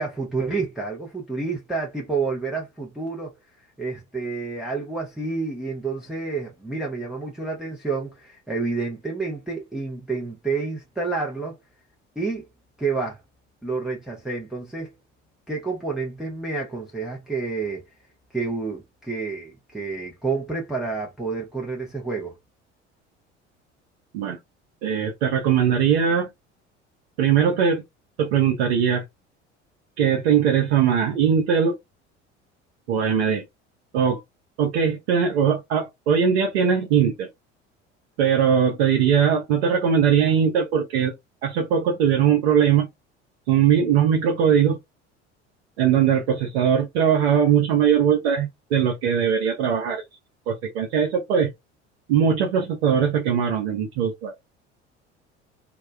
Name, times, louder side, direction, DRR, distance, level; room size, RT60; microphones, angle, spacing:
voice 1, 0.0-3.3 3.8-11.6 12.2-12.4 12.8-13.2 13.6-14.9 15.5-17.8 18.3-22.4, right 4 dB, ahead, 0.7 m, -29 dB
voice 2, 24.8-26.3 27.2-27.8 28.2-29.0 30.0-31.7 32.9-33.4 33.9-34.2 34.6-37.3 38.2-41.1 41.4-42.9 43.5-44.8 45.8-50.0 50.5-51.5 52.1-54.3, right 8 dB, 65° right, 0.7 m, -20 dB
2.2 x 2.1 x 3.0 m
figure-of-eight pair, 65°, 35 cm